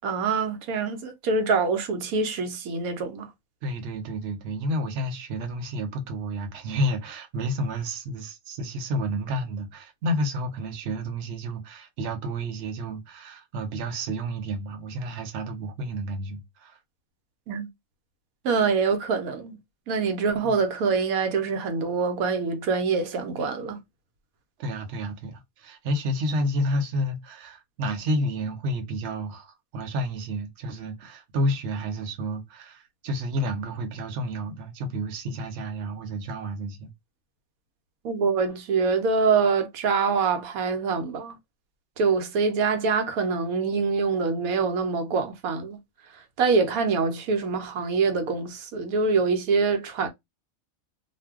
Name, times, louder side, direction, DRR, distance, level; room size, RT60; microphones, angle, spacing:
voice 1, 0.0-3.3 17.5-17.7 18.4-19.6 19.9-23.8 38.0-41.4 42.0-45.8 46.4-50.1, right 4 dB, 80° right, 1.1 m, -25 dB
voice 2, 3.6-16.8 20.4-20.5 24.6-36.9, equal, 55° right, 0.9 m, -30 dB
2.5 x 2.2 x 3.4 m
omnidirectional pair, 1.5 m